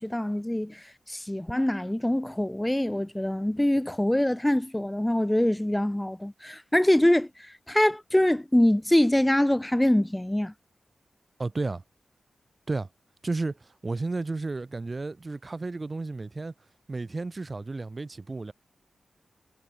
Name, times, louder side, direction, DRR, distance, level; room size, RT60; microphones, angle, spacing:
voice 1, 0.0-10.5, left 1 dB, 10° left, 1.4 m, -24 dB
voice 2, 11.4-11.8 12.7-12.9 13.2-16.5 16.9-18.5, right 3 dB, 35° right, 2.1 m, -32 dB
cardioid pair, 70°, 0 cm